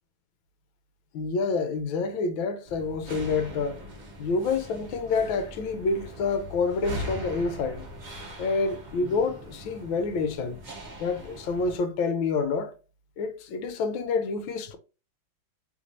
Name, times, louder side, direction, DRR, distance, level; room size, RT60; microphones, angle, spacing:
voice 1, 1.1-3.8 4.2-7.9 8.4-10.6 11.0-12.7 13.2-14.8, left 4 dB, 80° left, 1.5 m, -28 dB
sound 1, 2.7-11.8, equal, 50° right, 0.5 m, -41 dB
3.5 x 2.6 x 3.0 m
omnidirectional pair, 2.2 m